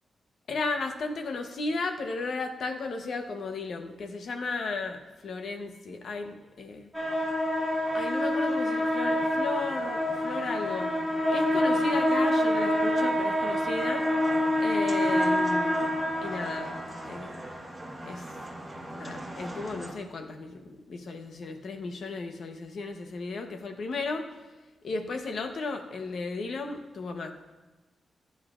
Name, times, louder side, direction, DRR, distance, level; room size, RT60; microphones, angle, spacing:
voice 1, 0.5-6.9 7.9-11.0 11.3-14.1 14.6-17.5 18.0-18.3 18.9-24.3 24.8-27.3, left 3 dB, 55° left, 5 dB, 0.9 m, -35 dB
sound 1, 6.9-19.9, left 1 dB, 5° right, 1.6 m, -27 dB
20.0 x 10.5 x 2.5 m, 1.2 s
wide cardioid pair, 175°, 0 cm